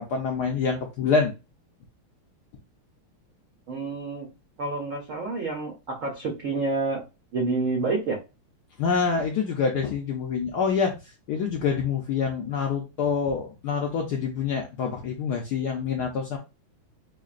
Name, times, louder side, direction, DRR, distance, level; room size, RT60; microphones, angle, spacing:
voice 1, 0.0-1.3 8.8-16.4, left 5 dB, 75° left, 1 dB, 0.9 m, -26 dB
voice 2, 3.7-4.3 4.6-7.0 7.3-8.2, right 3 dB, 80° right, 1 dB, 0.7 m, -28 dB
5.6 x 2.2 x 2.4 m, 0.28 s
omnidirectional pair, 2.3 m